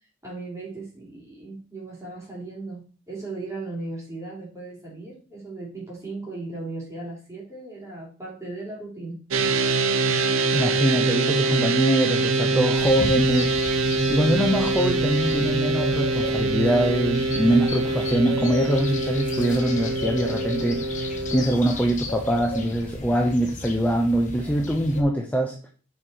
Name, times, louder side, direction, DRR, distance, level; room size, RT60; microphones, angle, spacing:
voice 1, 0.2-9.2, right 2 dB, 15° right, -4 dB, 3.5 m, -37 dB
sound 1, 9.3-21.5, right 3 dB, 85° right, 0.7 m, -24 dB
voice 2, 10.5-13.5 14.1-25.6, right 1 dB, 5° left, 2 dB, 0.7 m, -23 dB
sound 2, 12.7-25.0, left 2 dB, 40° left, 1.2 m, -35 dB
6.3 x 5.0 x 4.6 m, 0.39 s
head